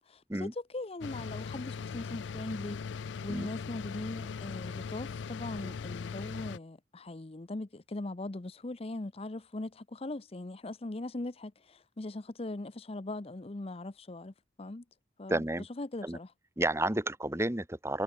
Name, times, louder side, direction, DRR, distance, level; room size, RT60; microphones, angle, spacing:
voice 1, 0.0-14.8 15.2-15.4 15.8-16.3, left 2 dB, 30° left, 0.7 m, -40 dB
sound 1, 1.0-6.6, left 5 dB, 70° left, 0.4 m, -39 dB
voice 2, 15.3-15.7 16.0-16.2 16.6-18.0, right 1 dB, 15° right, 1.3 m, -31 dB
head